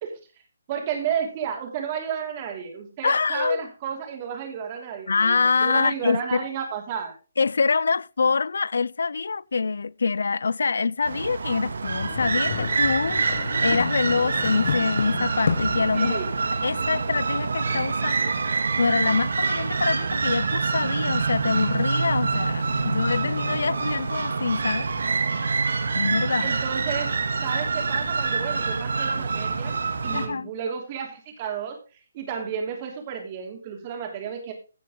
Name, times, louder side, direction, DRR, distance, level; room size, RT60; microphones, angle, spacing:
voice 1, 0.7-7.1 15.9-16.3 24.6-24.7 26.4-27.1 27.4-29.8 30.0-31.8 32.1-34.5, right 8 dB, 20° right, 3.0 m, -32 dB
voice 2, 3.0-3.6 5.1-6.4 7.4-16.2 16.6-24.8 25.9-26.6 30.1-30.5, left 4 dB, 70° left, 0.4 m, -25 dB
sound 1, 11.0-30.3, right 4 dB, 70° right, 2.4 m, -26 dB
sound 2, 11.9-15.9, left 6 dB, 45° left, 1.1 m, -31 dB
16.0 x 7.5 x 3.9 m
hypercardioid pair, 175°, 0 cm